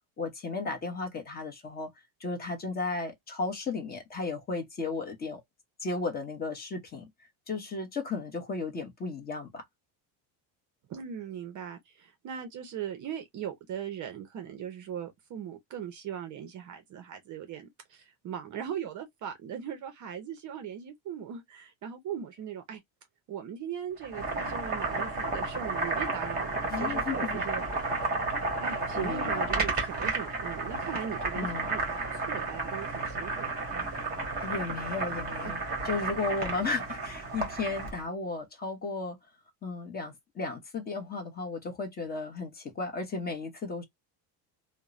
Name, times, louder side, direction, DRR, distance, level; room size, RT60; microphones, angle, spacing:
voice 1, 0.2-1.9 2.2-5.4 5.8-7.1 7.5-9.6 26.7-27.4 29.0-29.5 31.3-31.7 34.4-39.2 39.6-43.8, left 3 dB, 20° left, 0.7 m, -34 dB
voice 2, 10.9-22.8 23.3-27.6 28.6-34.0 35.4-35.5, right 8 dB, 40° right, 0.5 m, -39 dB
Boiling, 24.0-38.0, right 3 dB, 20° right, 1.1 m, -32 dB
2.9 x 2.1 x 2.4 m
cardioid pair, 150°, 49 cm